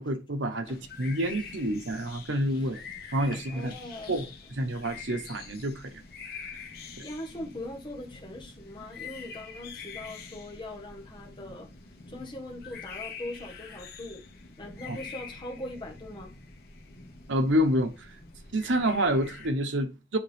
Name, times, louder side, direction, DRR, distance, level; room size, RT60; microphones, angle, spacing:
voice 1, 0.0-2.8 3.1-3.7 4.1-4.2 4.5-6.0 6.3-6.5 14.9-15.0 17.3-18.1 18.5-20.2, equal, 85° right, 1.1 m, -28 dB
sound 1, 0.6-19.5, left 5 dB, 55° left, 1.3 m, -45 dB
voice 2, 3.3-4.2 7.0-11.7 12.1-14.2 14.6-16.3, left 1 dB, 25° left, 1.5 m, -41 dB
9.7 x 3.6 x 3.5 m
head